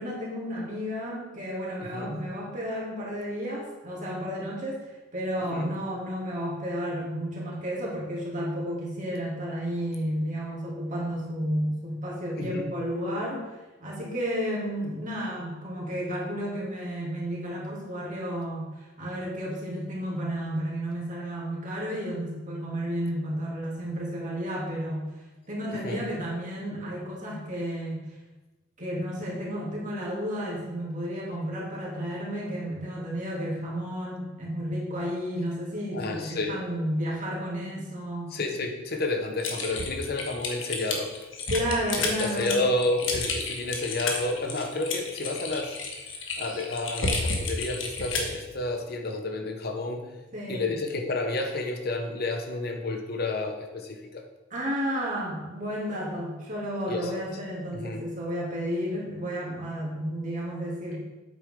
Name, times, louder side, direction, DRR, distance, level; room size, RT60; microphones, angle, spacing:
voice 1, 0.0-13.5 13.8-25.1 25.5-28.0 28.8-38.3 41.5-42.5 50.3-50.7 54.5-61.0, equal, 40° right, -4 dB, 2.7 m, -32 dB
voice 2, 1.8-2.2 5.5-5.7 12.4-12.7 25.8-26.0 35.9-36.6 38.3-41.2 42.0-45.8 46.4-50.1 50.5-54.2 56.9-57.1 57.7-58.0, left 2 dB, 50° left, 3 dB, 0.9 m, -30 dB
Typing, 39.4-48.4, left 3 dB, 70° left, 1.5 m, -31 dB
8.9 x 8.2 x 3.7 m, 1.1 s
head